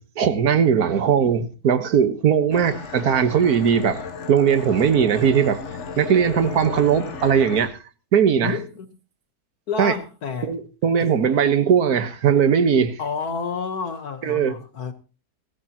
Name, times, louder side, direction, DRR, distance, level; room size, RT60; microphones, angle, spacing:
voice 1, 0.0-4.0 4.3-5.7 6.0-7.8 8.1-8.6 9.8-9.9 10.4-13.0 14.2-14.5, right 7 dB, 70° right, 1.8 m, -19 dB
sound 1, 2.5-7.7, left 5 dB, 50° left, 1.2 m, -35 dB
voice 2, 8.4-8.9 9.7-10.6 11.0-11.1 13.0-14.9, left 5 dB, 70° left, 1.8 m, -29 dB
18.5 x 15.0 x 2.9 m
omnidirectional pair, 1.7 m